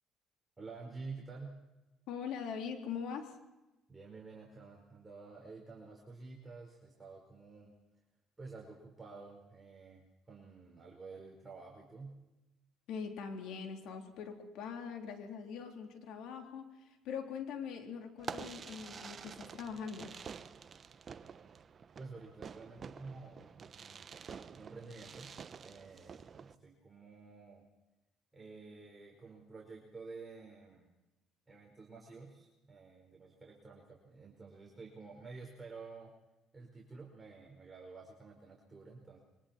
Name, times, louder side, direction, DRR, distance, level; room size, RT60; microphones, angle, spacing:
voice 1, 0.6-1.7 3.9-7.7 8.4-12.2 22.0-24.0 24.5-27.7 28.3-31.0 31.5-36.1 36.5-39.2, right 4 dB, 15° right, -2 dB, 4.8 m, -50 dB
voice 2, 2.1-3.3 12.9-20.1, left 6 dB, 75° left, 4 dB, 3.6 m, -42 dB
Fireworks, 18.2-26.5, right 6 dB, 40° right, 1.0 m, -48 dB
26.0 x 24.0 x 4.5 m, 1.0 s
cardioid pair, 100°, 0 cm